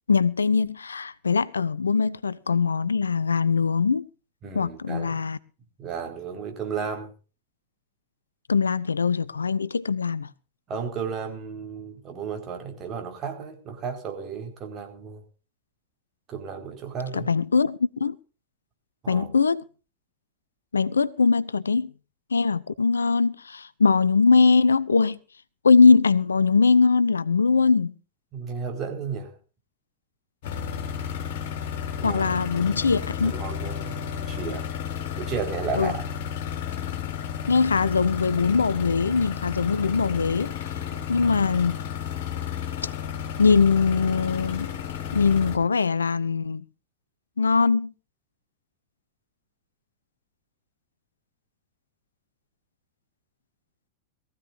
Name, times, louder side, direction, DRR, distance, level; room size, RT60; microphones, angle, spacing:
voice 1, 0.1-4.1 4.5-5.4 8.5-10.3 17.1-18.2 19.1-19.6 20.7-21.9 22.3-25.2 25.6-27.9 32.0-33.3 35.8-35.9 37.5-40.5 41.1-41.8 43.4-44.7 45.1-46.6 47.4-47.9, left 4 dB, 75° left, 0.6 m, -21 dB
voice 2, 4.4-5.2 5.8-7.1 10.7-15.2 16.3-17.3 19.0-19.3 28.3-29.3 32.0-32.3 32.9-34.7 35.2-36.0 40.8-41.1, right 6 dB, 30° right, 4.5 m, -34 dB
sound 1, 30.4-45.6, left 8 dB, 50° left, 3.6 m, -32 dB
22.0 x 15.0 x 2.6 m
figure-of-eight pair, 90°, 0 cm